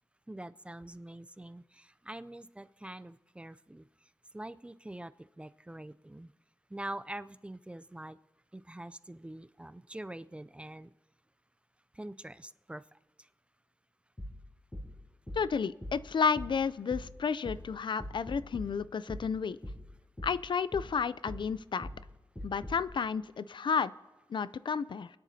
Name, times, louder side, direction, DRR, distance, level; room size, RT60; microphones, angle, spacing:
voice 1, 0.3-6.3 6.7-8.2 8.5-10.9 11.9-13.3, right 1 dB, 15° right, 15 dB, 0.3 m, -45 dB
sound 1, 14.2-22.9, equal, 20° left, 4.2 m, -44 dB
voice 2, 15.4-19.6 20.2-21.9 22.4-23.9 24.3-25.1, left 6 dB, 65° left, 16 dB, 0.3 m, -31 dB
28.0 x 10.0 x 2.7 m, 1.2 s
wide cardioid pair, 105°, 9 cm